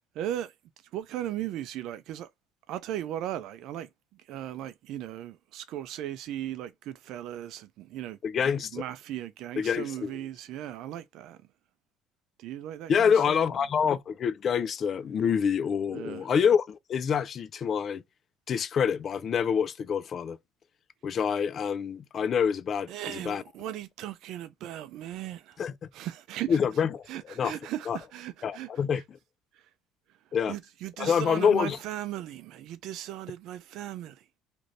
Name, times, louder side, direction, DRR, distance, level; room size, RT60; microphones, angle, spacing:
voice 1, 0.1-0.5 0.9-2.3 2.7-3.9 4.3-8.2 8.7-11.4 12.4-13.4 15.9-16.3 22.9-25.6 25.9-26.6 27.1-28.7 28.9-29.0 30.5-34.2, right 12 dB, 70° right, 0.4 m, -37 dB
voice 2, 8.2-8.8 9.6-10.2 12.9-18.0 18.5-20.4 21.0-23.4 25.6-25.7 26.5-27.0 27.4-27.5 27.9-28.0 28.4-29.0 30.3-30.5 31.0-31.8, left 7 dB, 45° left, 0.3 m, -26 dB
2.6 x 2.5 x 3.1 m
supercardioid pair, 90°, 0 cm